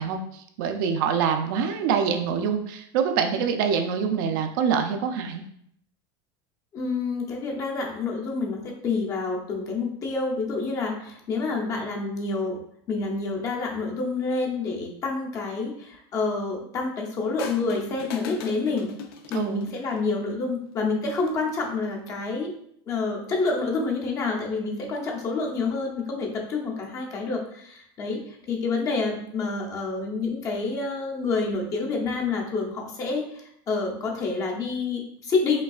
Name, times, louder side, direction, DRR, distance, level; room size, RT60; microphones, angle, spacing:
voice 1, 0.0-5.4 19.3-19.6, right 7 dB, 60° right, 6 dB, 0.5 m, -25 dB
voice 2, 6.7-12.6 12.9-18.9 19.3-22.5 22.9-35.6, left 3 dB, 25° left, 1 dB, 0.6 m, -28 dB
sound 1, 17.4-20.1 21.1-21.5, left 6 dB, 75° left, 0.5 m, -40 dB
5.2 x 3.3 x 2.3 m, 0.69 s
supercardioid pair, 170°, 13 cm